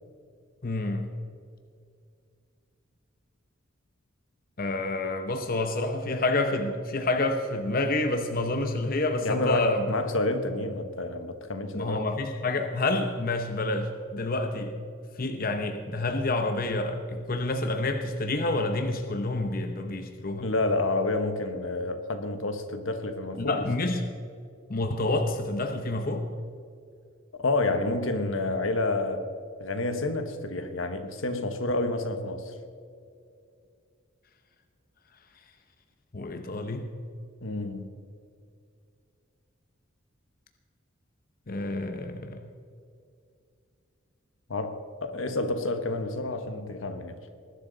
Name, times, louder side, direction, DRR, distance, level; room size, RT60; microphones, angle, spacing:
voice 1, 0.6-1.1 4.6-9.9 11.7-14.7 15.2-20.5 23.4-24.0 24.7-26.2 36.1-36.9 41.5-42.5, left 2 dB, 45° left, 5 dB, 0.8 m, -28 dB
voice 2, 9.2-12.1 20.4-23.7 27.3-29.3 29.6-32.5 37.4-37.9 44.5-47.2, left 2 dB, 75° left, 8 dB, 1.2 m, -29 dB
20.0 x 11.5 x 4.0 m, 2.4 s
head